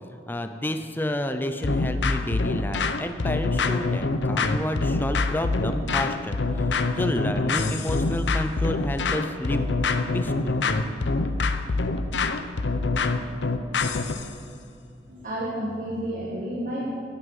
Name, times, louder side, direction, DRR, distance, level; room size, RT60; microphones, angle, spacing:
voice 1, 0.1-6.7 6.9-9.7 10.1-10.7 14.2-14.3, left 1 dB, 10° left, 7 dB, 0.5 m, -30 dB
sound 1, 1.6-14.3, left 3 dB, 85° left, 0.7 m, -25 dB
voice 2, 15.1-16.9, right 1 dB, 45° right, -4 dB, 1.6 m, -30 dB
11.5 x 9.2 x 5.4 m, 2.5 s
head